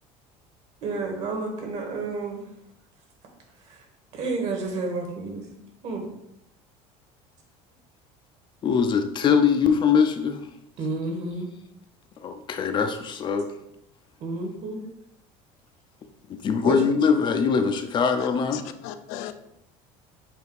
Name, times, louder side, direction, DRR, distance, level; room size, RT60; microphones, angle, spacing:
voice 1, 0.8-2.4 3.7-3.8 4.1-5.5 5.8-6.1 10.8-11.5 14.2-14.8 16.6-16.8, right 3 dB, 55° right, 1.8 m, -30 dB
voice 2, 8.6-10.4 12.2-13.5 16.4-18.6, left 6 dB, 35° left, 0.6 m, -22 dB
voice 3, 18.2-19.4, left 11 dB, 75° left, 0.6 m, -38 dB
7.0 x 2.8 x 4.8 m
cardioid pair, 130°, 14 cm